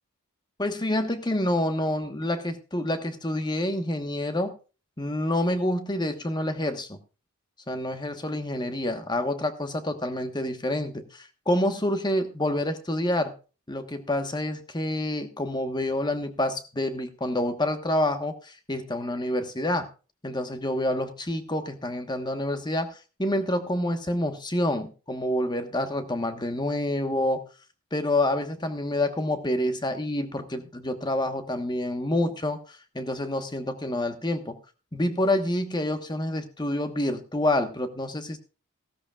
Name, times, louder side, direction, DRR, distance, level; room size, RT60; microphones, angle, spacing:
voice 1, 0.6-4.5 5.0-7.0 7.7-13.3 13.7-19.9 20.2-27.4 27.9-34.6 34.9-38.4, left 1 dB, 20° left, 8 dB, 1.3 m, -28 dB
16.0 x 13.0 x 2.4 m, 0.33 s
head